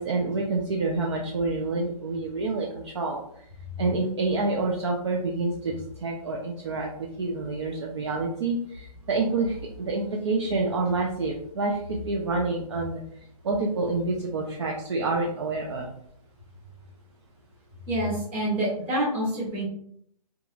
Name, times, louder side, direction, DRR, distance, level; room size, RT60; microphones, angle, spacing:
voice 1, 0.0-3.2 3.8-13.0 13.4-15.9, right 3 dB, 45° right, -1 dB, 0.5 m, -28 dB
voice 2, 17.9-19.6, right 1 dB, 20° right, -6 dB, 1.2 m, -27 dB
3.6 x 2.9 x 2.5 m, 0.70 s
hypercardioid pair, 170°, 20 cm